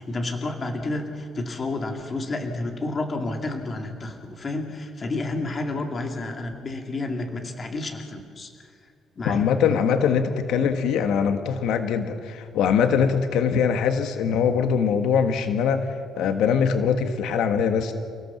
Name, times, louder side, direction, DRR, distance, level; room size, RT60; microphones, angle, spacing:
voice 1, 0.0-8.5 9.2-9.5, left 2 dB, 25° left, 3 dB, 2.4 m, -30 dB
voice 2, 9.2-17.9, left 7 dB, 80° left, 7 dB, 1.5 m, -22 dB
30.0 x 16.5 x 7.3 m, 2.2 s
cardioid pair, 160°, 0 cm